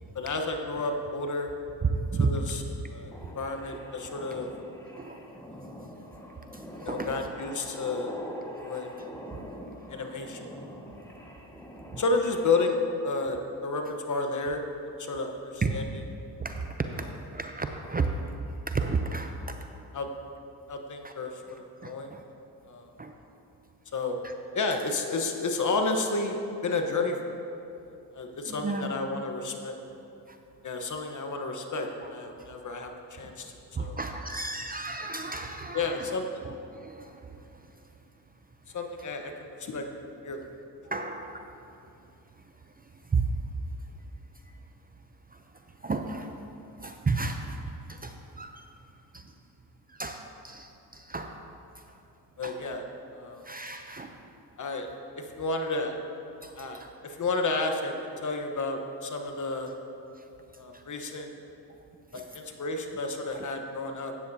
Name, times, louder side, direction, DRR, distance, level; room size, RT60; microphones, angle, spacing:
voice 1, 0.1-1.5 2.2-2.6 2.9-4.5 6.8-8.1 8.6-8.9 9.9-10.5 12.0-14.6 15.0-15.8 19.9-20.1 20.7-22.1 22.7-22.9 23.9-24.2 24.5-27.3 28.1-29.8 30.6-33.5 33.8-34.0 35.7-36.4 38.7-39.3 39.6-39.9 40.2-40.4 52.4-52.8 53.1-53.4 54.6-54.9 55.2-55.9 56.6-59.7 60.6-61.3 62.1-64.1, left 3 dB, 45° left, 4 dB, 1.2 m, -31 dB
voice 2, 1.8-2.4 5.0-5.2 6.5-7.2 9.0-9.1 10.2-10.3 11.9-12.0 15.6-15.8 16.4-16.7 17.0-18.1 18.7-19.6 21.0-21.1 21.8-22.2 23.0-23.1 24.2-24.3 28.4-29.0 30.3-30.4 33.2-33.3 33.7-36.2 36.4-37.6 40.9-41.4 42.8-42.9 43.1-43.3 45.3-45.4 45.8-46.4 46.8-48.6 49.1-49.3 49.9-51.3 51.8-51.9 52.4-52.6 53.4-54.1 56.4-56.9 60.2-60.3 60.7-60.8 62.1-62.2, right 4 dB, 20° right, 5 dB, 0.6 m, -33 dB
sound 1, 3.1-13.0, equal, 5° left, 1.6 m, -44 dB
14.0 x 9.4 x 2.8 m, 2.9 s
supercardioid pair, 70°, 43 cm